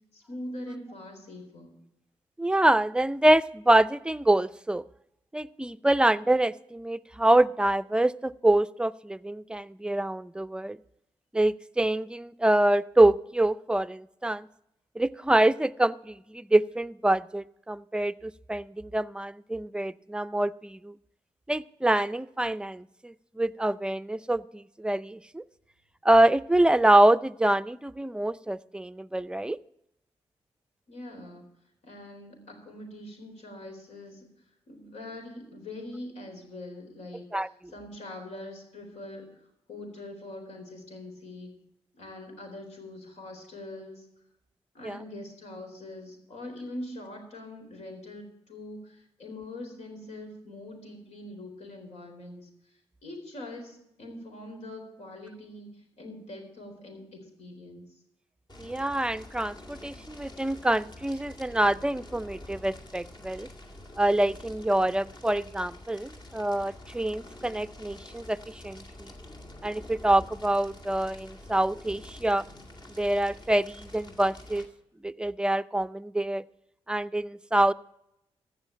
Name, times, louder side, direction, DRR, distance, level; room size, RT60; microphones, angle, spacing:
voice 1, 0.1-1.7 30.9-31.5 31.8-34.2 34.7-39.3 39.7-41.5 41.9-44.1 44.7-58.0, left 1 dB, 80° left, 3 dB, 4.1 m, -43 dB
voice 2, 2.4-4.8 5.3-10.8 11.3-14.5 15.0-20.9 21.5-25.4 26.0-29.6 37.3-37.5 44.8-45.0 58.6-63.5 64.0-69.1 69.6-72.5 73.0-74.7 75.0-76.4 76.9-77.7, right 1 dB, 10° right, 14 dB, 0.5 m, -25 dB
Fire, 58.5-74.7, left 1 dB, 40° left, 2.2 m, -47 dB
15.0 x 5.7 x 9.0 m, 0.81 s
cardioid pair, 55°, 11 cm